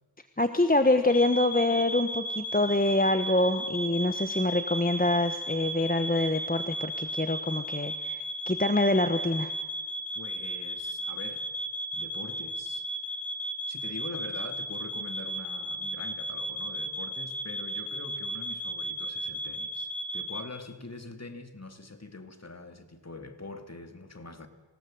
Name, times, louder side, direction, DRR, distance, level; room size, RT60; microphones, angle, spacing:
voice 1, 0.4-9.6, left 2 dB, 20° left, 1.2 m, -25 dB
sound 1, 1.1-20.4, right 1 dB, 70° left, 2.0 m, -35 dB
voice 2, 10.1-11.5 11.9-12.9 13.7-24.5, left 2 dB, 35° left, 2.6 m, -44 dB
27.0 x 17.5 x 7.8 m
wide cardioid pair, 60°, 46 cm